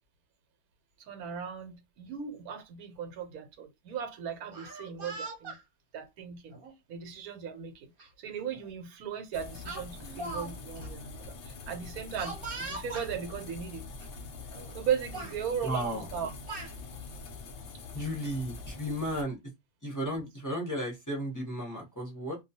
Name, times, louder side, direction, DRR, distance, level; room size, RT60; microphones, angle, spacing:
voice 1, 1.1-5.6 5.9-6.6 6.9-7.9 8.2-13.8 14.7-16.3, right 8 dB, 80° right, 1.1 m, -37 dB
Speech, 4.4-5.6 6.5-6.7 8.0-8.1 8.5-8.7 9.7-10.5 10.8-10.9 12.2-13.1 14.0-14.1 14.5-14.8 15.1-15.4 16.1-16.7, right 2 dB, 45° right, 0.9 m, -40 dB
sound 1, 9.3-19.2, left 4 dB, 75° left, 0.5 m, -44 dB
voice 2, 15.6-16.1 17.9-19.4 19.8-22.4, equal, 20° left, 0.6 m, -34 dB
2.3 x 2.3 x 2.7 m
omnidirectional pair, 1.6 m